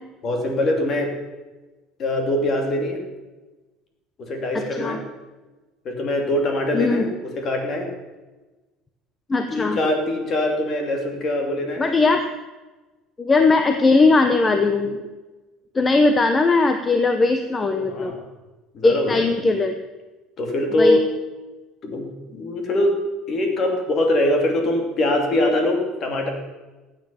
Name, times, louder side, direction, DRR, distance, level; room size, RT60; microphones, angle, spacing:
voice 1, 0.2-1.1 2.0-3.0 4.2-5.0 5.8-7.9 9.5-11.8 17.7-18.2 18.7-19.3 20.4-21.0 21.8-23.0 23.3-26.3, left 1 dB, 35° left, 3 dB, 2.8 m, -23 dB
voice 2, 4.5-5.0 6.7-7.1 9.3-9.8 11.8-12.2 13.2-15.0 15.7-18.1 18.8-19.8 20.8-21.0, left 3 dB, 15° left, 6 dB, 0.8 m, -19 dB
14.5 x 9.2 x 7.0 m, 1.2 s
cardioid pair, 150°, 0 cm